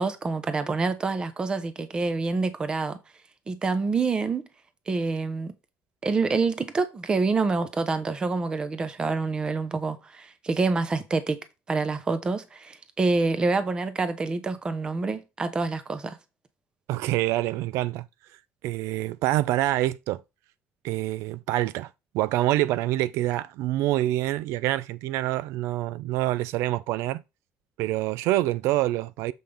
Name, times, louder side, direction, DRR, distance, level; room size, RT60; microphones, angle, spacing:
voice 1, 0.0-3.0 3.5-4.4 4.9-5.5 6.0-11.4 11.7-16.2, right 3 dB, 20° right, 0.8 m, -27 dB
voice 2, 16.9-18.1 18.6-20.2 20.8-21.9 22.1-27.2 27.8-29.3, right 15 dB, 80° right, 0.3 m, -26 dB
7.0 x 5.7 x 3.4 m
cardioid pair, 175°, 5 cm